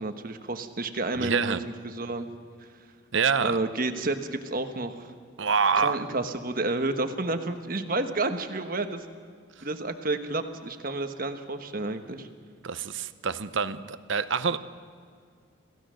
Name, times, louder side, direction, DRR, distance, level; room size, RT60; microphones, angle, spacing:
voice 1, 0.0-1.5 1.8-2.3 3.4-5.1 5.8-9.0 9.6-12.3, right 2 dB, 40° right, 7 dB, 1.2 m, -30 dB
voice 2, 1.2-1.6 3.1-3.6 5.4-6.0 12.6-14.6, right 6 dB, 60° right, 13 dB, 0.8 m, -26 dB
27.0 x 15.5 x 6.3 m, 2.1 s
head